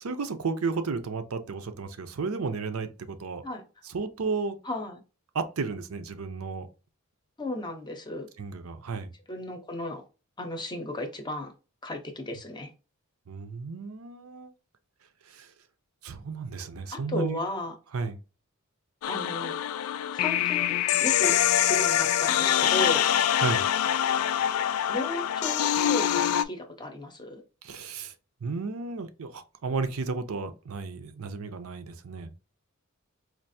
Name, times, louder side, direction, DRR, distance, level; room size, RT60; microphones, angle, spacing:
voice 1, 0.0-3.4 3.9-4.6 5.3-6.7 8.4-9.1 13.3-14.5 15.3-15.5 16.0-17.4 17.9-18.2 23.4-23.6 27.6-28.1 28.4-32.3, right 4 dB, 75° right, 0.6 m, -33 dB
voice 2, 4.6-5.0 7.4-8.3 9.3-10.0 10.4-11.5 11.8-12.7 16.9-17.7 19.1-19.6 20.1-23.1 24.9-27.4, left 1 dB, 20° left, 0.7 m, -34 dB
sound 1, 19.0-26.4, left 10 dB, 75° left, 0.3 m, -25 dB
4.5 x 2.5 x 2.6 m
head